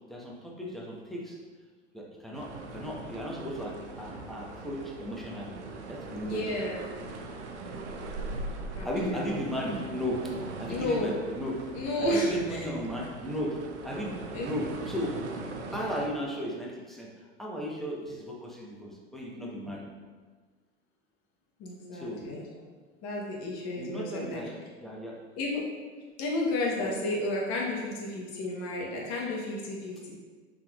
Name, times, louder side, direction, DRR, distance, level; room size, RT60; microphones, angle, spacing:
voice 1, 0.1-1.4 1.9-5.5 5.9-6.7 8.8-11.6 12.0-13.6 13.8-15.1 15.4-17.1 17.4-19.8 21.9-22.2 23.8-25.2, equal, ahead, -3 dB, 0.9 m, -35 dB
sound 1, 2.3-16.1, right 2 dB, 90° right, 0.6 m, -40 dB
voice 2, 6.2-6.8 8.7-9.2 10.7-11.2 11.7-12.6 14.3-14.5 21.6-22.5 23.0-24.4 25.4-25.6 26.2-30.1, left 1 dB, 50° left, -3 dB, 1.1 m, -32 dB
5.7 x 3.6 x 2.4 m, 1.4 s
hypercardioid pair, 80°, 34 cm